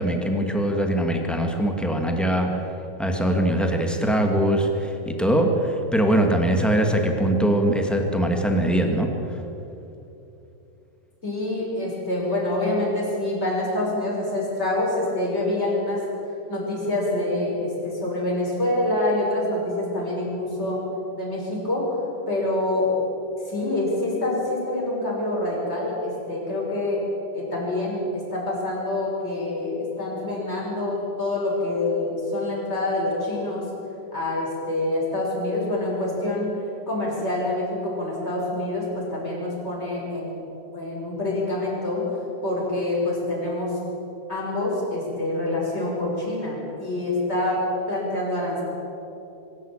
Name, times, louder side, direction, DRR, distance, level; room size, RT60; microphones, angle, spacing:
voice 1, 0.0-2.6 3.0-9.4, right 1 dB, ahead, 3 dB, 1.0 m, -22 dB
voice 2, 11.2-16.0 16.5-20.8 21.1-22.0 22.3-23.1 23.4-27.0 27.3-33.7 34.1-36.5 36.9-40.4 40.7-42.2 42.4-43.8 44.3-48.6, left 2 dB, 20° left, -4 dB, 6.0 m, -26 dB
23.5 x 13.0 x 8.9 m, 2.9 s
omnidirectional pair, 3.7 m